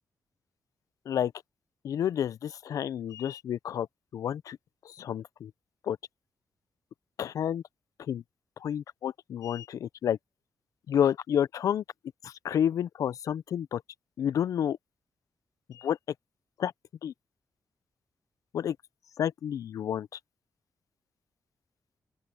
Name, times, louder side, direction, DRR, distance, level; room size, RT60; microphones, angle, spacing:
voice 1, 1.8-3.9 4.1-4.6 4.9-5.5 5.8-6.0 7.2-7.6 8.1-8.2 8.6-10.2 10.9-11.8 12.2-13.8 14.2-14.8 15.7-16.0 16.6-16.7 17.0-17.1 18.5-18.8 19.2-20.1, left 9 dB, 80° left, 0.5 m, -30 dB
open air
cardioid pair, 95°, 6 cm